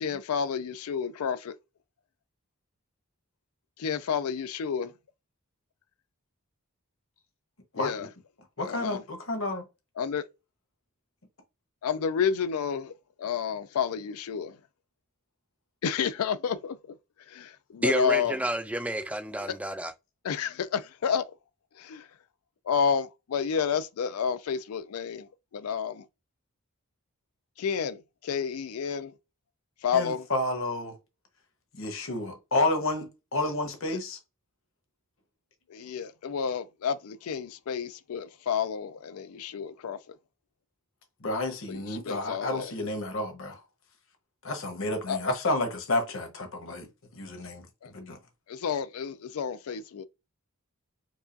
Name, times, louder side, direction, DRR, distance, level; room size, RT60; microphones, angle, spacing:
voice 1, 0.0-1.6 3.8-4.9 7.8-8.1 8.6-9.0 10.0-10.2 11.8-12.9 13.2-14.6 15.8-16.8 17.3-18.4 20.2-21.3 21.8-22.1 22.7-26.1 27.6-29.1 29.8-30.3 35.7-40.0 41.7-42.7 45.1-45.2 47.8-47.9 48.5-50.0, left 7 dB, 85° left, 0.4 m, -30 dB
voice 2, 7.7-8.1 8.6-9.6 29.9-31.0 31.8-34.2 41.2-43.6 44.4-46.9 47.1-48.2, left 2 dB, 60° left, 1.1 m, -30 dB
voice 3, 17.8-19.9, right 1 dB, 5° right, 0.3 m, -30 dB
4.7 x 2.4 x 2.5 m
head